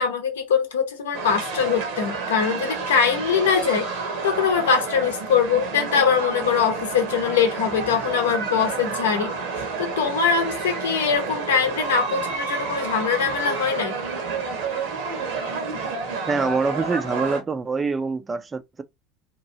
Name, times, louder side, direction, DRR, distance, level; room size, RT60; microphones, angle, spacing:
voice 1, 0.0-3.9 4.2-9.3 9.8-13.9, left 6 dB, 75° left, 0.7 m, -22 dB
sound 1, 1.1-17.4, right 4 dB, 65° right, 1.1 m, -30 dB
voice 2, 16.3-18.8, right 4 dB, 25° right, 0.5 m, -25 dB
2.9 x 2.6 x 2.7 m
hypercardioid pair, 75°, 0 cm